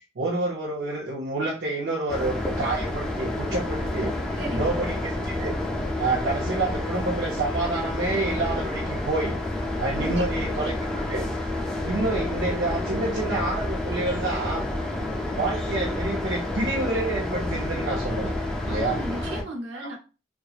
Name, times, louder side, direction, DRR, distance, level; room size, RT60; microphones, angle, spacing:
voice 1, 0.2-4.1 4.5-5.6 6.0-9.4 9.8-11.2 11.8-14.7 15.3-18.3 18.6-19.0 19.7-19.9, right 2 dB, 85° right, -5 dB, 0.7 m, -28 dB
sound 1, 2.1-19.4, left 1 dB, 5° left, 0.4 m, -29 dB
voice 2, 4.4-4.8 10.0-10.5 18.7-20.0, right 1 dB, 70° right, -2 dB, 1.1 m, -35 dB
2.9 x 2.2 x 2.4 m, 0.32 s
head